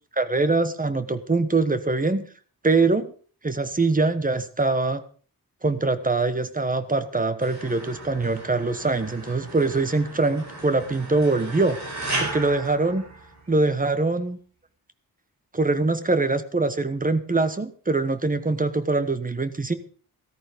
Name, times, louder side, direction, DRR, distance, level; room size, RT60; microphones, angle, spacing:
voice 1, 0.1-2.3 2.6-3.1 3.4-5.0 5.6-11.8 12.2-13.1 13.5-14.4 15.5-19.7, right 3 dB, 20° right, 11 dB, 1.3 m, -23 dB
sound 1, 7.4-13.7, right 2 dB, 50° right, 6.4 m, -35 dB
14.5 x 13.5 x 5.2 m, 0.42 s
wide cardioid pair, 155°, 37 cm